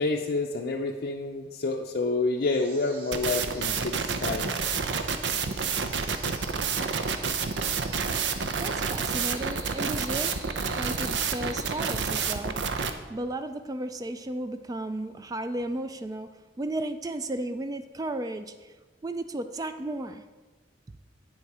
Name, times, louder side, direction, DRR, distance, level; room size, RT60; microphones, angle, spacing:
voice 1, 0.0-4.5, left 3 dB, 60° left, 0 dB, 0.5 m, -28 dB
sound 1, 2.4-12.6, right 2 dB, 50° right, 2.4 m, -48 dB
sound 2, 3.1-12.9, right 5 dB, 75° right, 0.6 m, -29 dB
voice 2, 8.6-10.3 10.8-12.6 13.1-18.7 19.0-20.2, right 1 dB, 20° right, 10 dB, 0.3 m, -34 dB
8.9 x 7.1 x 4.8 m, 1.3 s
head